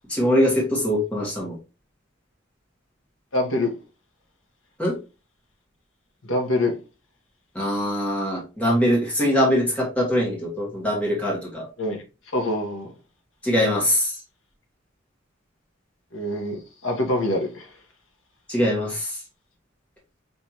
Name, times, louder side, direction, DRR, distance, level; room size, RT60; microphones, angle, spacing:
voice 1, 0.1-1.5 4.8-5.0 7.5-11.7 13.4-14.2 18.5-19.2, equal, 5° left, 1.5 m, -22 dB
voice 2, 3.3-3.7 6.2-6.7 11.8-12.0 12.3-12.9 16.1-17.7, left 1 dB, 85° left, 1.4 m, -25 dB
5.2 x 3.3 x 2.9 m
head